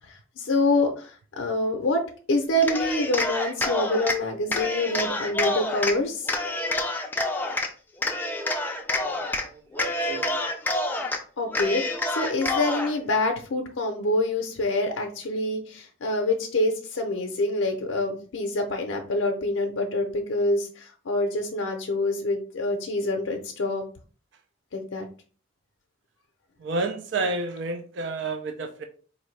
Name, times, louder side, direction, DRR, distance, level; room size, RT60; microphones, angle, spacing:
voice 1, 0.1-2.0 2.3-6.3 11.4-23.8 24.7-25.1, left 2 dB, 90° left, 3 dB, 0.5 m, -26 dB
Cheering, 2.6-4.2 4.5-6.0 6.3-7.7 8.0-9.5 9.7-11.2 11.5-12.9, left 2 dB, 10° left, 0.3 m, -27 dB
voice 2, 9.0-10.4 26.6-28.8, right 3 dB, 65° right, 6 dB, 0.4 m, -31 dB
4.2 x 2.6 x 3.1 m, 0.41 s
head